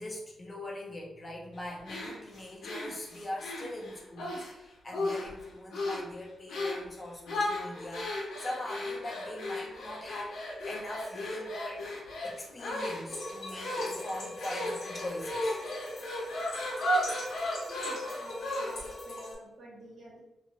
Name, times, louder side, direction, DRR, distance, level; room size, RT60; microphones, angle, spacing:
voice 1, 0.0-11.9 12.2-15.6, left 1 dB, 25° left, -1 dB, 0.6 m, -41 dB
sound 1, 1.9-4.5 4.9-5.4 5.7-6.1 6.5-6.9 7.3-18.9, left 1 dB, 85° left, 0.8 m, -35 dB
sound 2, 13.1-19.4, left 1 dB, 60° left, 1.2 m, -41 dB
voice 2, 17.7-20.2, right 1 dB, 50° right, -6 dB, 1.2 m, -49 dB
3.0 x 2.5 x 2.8 m, 0.95 s
wide cardioid pair, 155°, 0 cm